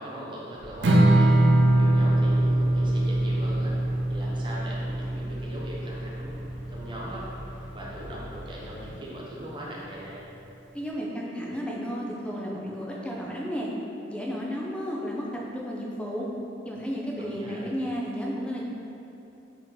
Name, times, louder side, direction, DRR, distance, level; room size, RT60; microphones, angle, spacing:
voice 1, 0.0-1.4 1.7-3.8 4.1-6.4 6.7-7.3 7.7-10.2 17.1-17.7, right 1 dB, 25° right, -5 dB, 0.7 m, -40 dB
sound 1, 0.5-8.9, equal, 70° left, 0.8 m, -44 dB
Strum, 0.8-7.1, right 1 dB, 70° right, 0.5 m, -23 dB
voice 2, 10.7-13.7 14.1-16.3 16.6-18.6, equal, 5° left, -3 dB, 0.5 m, -33 dB
4.3 x 2.9 x 3.9 m, 2.8 s
head